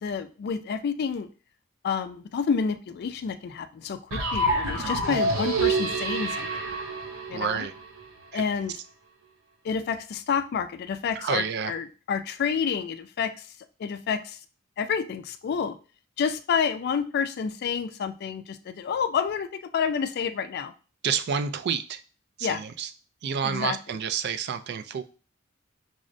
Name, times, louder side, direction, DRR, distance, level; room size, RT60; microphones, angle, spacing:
voice 1, 0.0-1.3 1.8-6.6 7.3-7.7 8.3-8.7 9.6-13.5 13.8-14.4 14.8-15.8 16.2-20.7 22.4-22.6 23.4-23.8, left 6 dB, 50° left, 10 dB, 0.3 m, -29 dB
sound 1, 4.1-8.1, right 2 dB, 85° right, 0.7 m, -27 dB
voice 2, 7.3-7.7 8.3-8.4 11.2-11.7 21.0-22.0 22.4-22.9 23.2-25.0, right 7 dB, 55° right, 10 dB, 0.3 m, -29 dB
6.1 x 2.1 x 2.5 m, 0.37 s
head